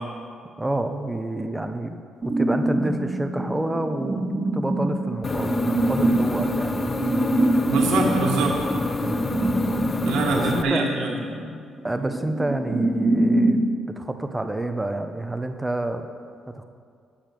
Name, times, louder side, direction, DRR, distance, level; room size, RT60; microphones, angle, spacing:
voice 1, 0.6-6.8 9.0-9.1 10.3-10.9 11.3-11.4 11.8-13.7 14.0-16.1 16.5-16.6, right 1 dB, 10° right, 7 dB, 0.7 m, -28 dB
sound 1, 2.2-13.7, right 1 dB, 35° right, 1.5 m, -25 dB
sound 2, 5.2-10.6, left 4 dB, 30° left, 0.4 m, -28 dB
voice 2, 7.7-8.6 10.0-11.1, right 3 dB, 85° right, -2 dB, 1.6 m, -23 dB
8.6 x 6.9 x 6.0 m, 2.3 s
cardioid pair, 90°, 0 cm